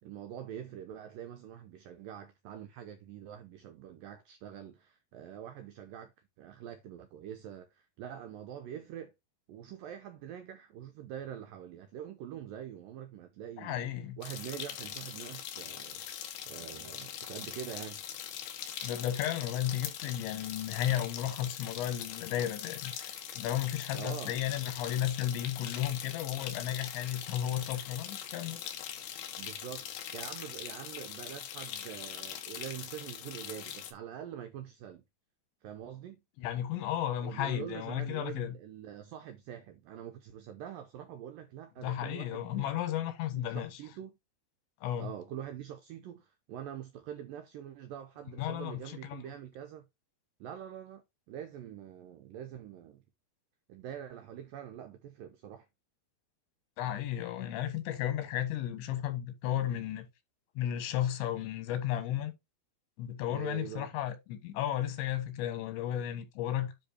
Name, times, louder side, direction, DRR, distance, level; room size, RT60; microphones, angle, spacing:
voice 1, 0.0-6.1 6.4-9.1 9.5-13.9 14.2-16.0 16.5-18.0 23.9-24.4 29.4-35.0 35.6-36.2 37.2-42.8 43.3-44.1 45.0-49.8 50.4-53.0 53.7-55.7 63.3-63.9, right 9 dB, 85° right, 1.9 m, -45 dB
voice 2, 13.6-14.2 18.8-28.6 36.4-38.6 41.8-43.7 44.8-45.1 48.4-49.2 56.8-60.1 60.6-62.3 63.0-66.7, left 11 dB, 90° left, 3.7 m, -34 dB
sound 1, 14.2-33.9, left 10 dB, 70° left, 3.0 m, -42 dB
10.0 x 3.7 x 4.2 m
omnidirectional pair, 5.1 m